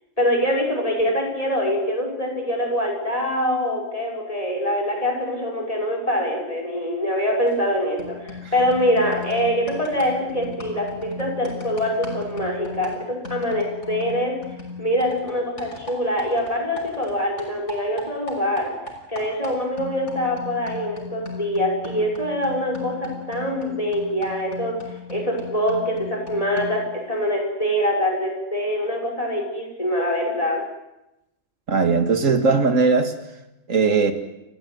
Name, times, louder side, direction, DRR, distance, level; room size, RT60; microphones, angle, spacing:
voice 1, 0.2-14.3 14.8-18.7 19.1-24.8 25.1-26.8 27.1-30.6, equal, 25° left, 6.1 m, -24 dB
sound 1, 7.5-7.7 8.0-17.1 17.4-26.9, left 2 dB, 65° left, 6.4 m, -37 dB
voice 2, 31.7-33.1 33.7-34.1, right 4 dB, 80° right, 2.4 m, -19 dB
29.5 x 15.0 x 9.5 m
omnidirectional pair, 1.3 m